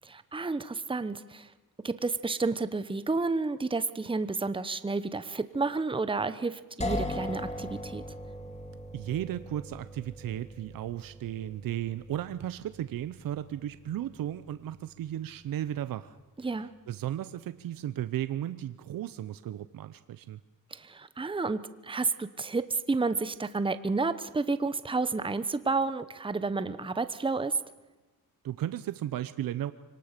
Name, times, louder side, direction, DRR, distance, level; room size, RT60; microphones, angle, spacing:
voice 1, 0.0-1.5 1.8-8.0 16.4-16.7 20.7-27.5, right 3 dB, 15° right, 12 dB, 1.0 m, -31 dB
sound 1, 6.8-16.6, left 1 dB, 20° left, 2.3 m, -41 dB
voice 2, 8.9-16.2 16.9-20.4 28.4-29.7, right 12 dB, 75° right, 13 dB, 0.8 m, -35 dB
24.5 x 19.0 x 6.7 m, 1.2 s
cardioid pair, 90°, 35 cm